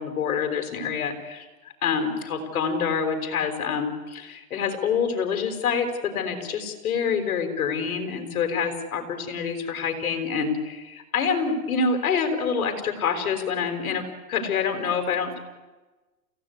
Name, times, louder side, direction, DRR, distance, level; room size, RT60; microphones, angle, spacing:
voice 1, 0.0-1.5 1.8-15.4, left 6 dB, 70° left, 7 dB, 5.2 m, -26 dB
28.5 x 16.5 x 9.7 m, 1.2 s
hypercardioid pair, 130°, 44 cm